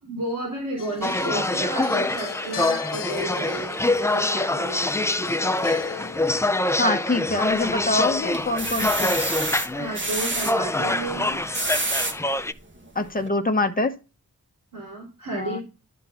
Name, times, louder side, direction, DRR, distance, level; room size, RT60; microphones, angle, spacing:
voice 1, 0.0-4.9 9.7-11.4 14.7-15.6, right 2 dB, 60° right, -5 dB, 3.7 m, -32 dB
sound 1, 0.8-6.8 8.8-9.0, left 7 dB, 70° left, 0.8 m, -38 dB
sound 2, 1.0-12.5, left 2 dB, 10° left, 0.4 m, -25 dB
voice 2, 6.8-9.2 12.9-13.9 15.3-15.6, left 2 dB, 25° left, 7 dB, 1.1 m, -25 dB
sound 3, 7.3-7.9 8.3-10.5 11.3-12.2 12.8-12.9 13.2-13.3, right 2 dB, 35° right, 1.5 m, -28 dB
11.5 x 3.8 x 5.7 m, 0.31 s
wide cardioid pair, 105°, 34 cm